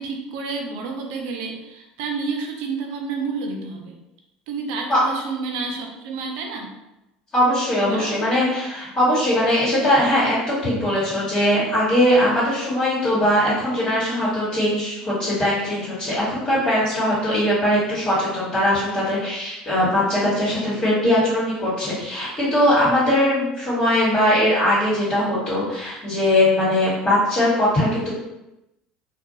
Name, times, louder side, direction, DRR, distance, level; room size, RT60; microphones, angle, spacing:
voice 1, 0.0-3.9 4.5-6.7 7.8-8.3, right 4 dB, 75° right, 2 dB, 0.5 m, -30 dB
voice 2, 7.3-28.1, left 1 dB, 35° left, -11 dB, 1.3 m, -20 dB
2.4 x 2.2 x 2.7 m, 0.93 s
supercardioid pair, 85°, 3 cm